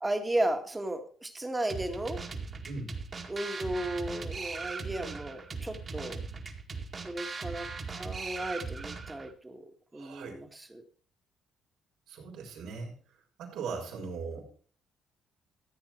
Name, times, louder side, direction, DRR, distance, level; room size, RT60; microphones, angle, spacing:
voice 1, 0.0-2.2 3.3-6.2 7.0-10.8, right 1 dB, 15° right, 6 dB, 1.7 m, -35 dB
sound 1, 1.7-9.3, right 4 dB, 30° right, 1.9 m, -39 dB
voice 2, 9.9-10.4 12.1-12.9 13.4-14.4, right 4 dB, 85° right, -1 dB, 4.1 m, -39 dB
14.5 x 8.5 x 4.4 m, 0.44 s
cardioid pair, 120°, 0 cm